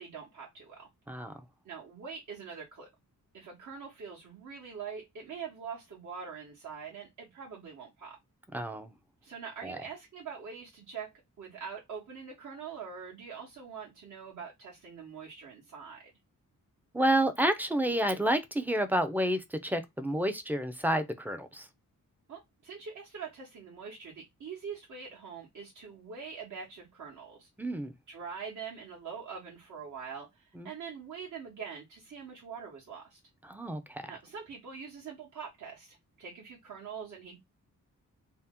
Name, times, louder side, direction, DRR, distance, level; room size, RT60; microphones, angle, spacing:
voice 1, 0.0-0.9 1.6-2.9 3.3-8.2 9.2-16.1 22.3-27.5 28.1-33.2 34.1-37.4, right 6 dB, 60° right, 1.0 m, -44 dB
voice 2, 8.5-8.9 9.6-9.8 16.9-21.7 27.6-27.9 30.6-30.7 33.5-34.0, right 1 dB, 5° right, 0.4 m, -29 dB
2.7 x 2.0 x 3.5 m
wide cardioid pair, 105°, 33 cm